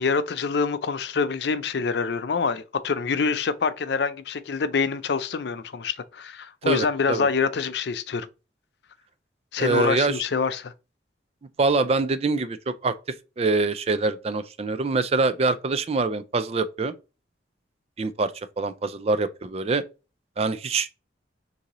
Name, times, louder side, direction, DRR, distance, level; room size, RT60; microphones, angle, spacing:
voice 1, 0.0-8.3 9.5-10.7, left 5 dB, 65° left, 0.4 m, -26 dB
voice 2, 6.7-7.3 9.6-10.2 11.6-12.9 13.4-16.9 18.0-18.3 18.6-19.8 20.4-20.9, right 3 dB, 35° right, 0.3 m, -24 dB
6.5 x 2.7 x 3.0 m
head